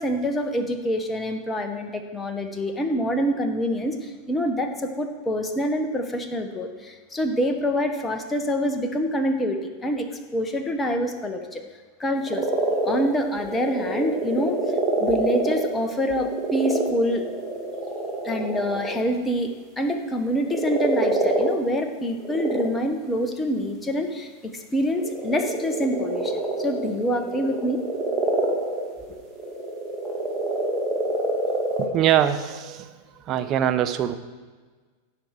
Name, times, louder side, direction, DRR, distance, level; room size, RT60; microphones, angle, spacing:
voice 1, 0.0-11.6 12.0-12.5 12.8-14.6 15.0-17.2 18.2-27.8, equal, 15° left, 5 dB, 1.1 m, -26 dB
sound 1, 12.3-19.0 20.5-21.5 22.2-22.8 23.1-23.2 24.9-31.9, right 2 dB, 15° right, 2.1 m, -26 dB
voice 2, 31.8-32.9 33.2-34.1, right 11 dB, 35° right, 10 dB, 0.7 m, -23 dB
15.5 x 5.7 x 4.7 m, 1.4 s
figure-of-eight pair, 90°, 0 cm